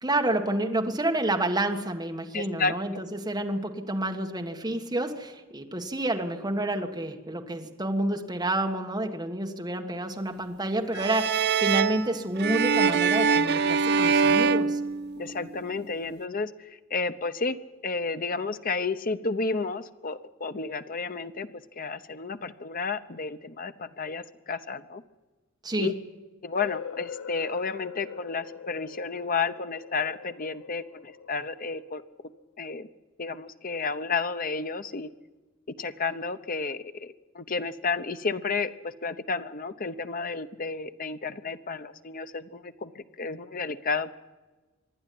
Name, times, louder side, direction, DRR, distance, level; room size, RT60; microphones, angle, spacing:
voice 1, 0.0-14.8 25.6-26.0, right 1 dB, 20° right, 3 dB, 1.6 m, -29 dB
voice 2, 2.3-2.7 15.2-17.6 17.8-21.5 21.8-25.0 25.8-25.9 26.4-32.0 32.6-32.9 33.2-35.1 35.8-44.1, left 4 dB, 45° left, 10 dB, 0.9 m, -32 dB
sound 1, 10.9-15.6, right 5 dB, 55° right, 0.6 m, -24 dB
sound 2, 26.6-32.4, left 7 dB, 85° left, 0.9 m, -43 dB
26.0 x 11.0 x 9.5 m, 1.2 s
head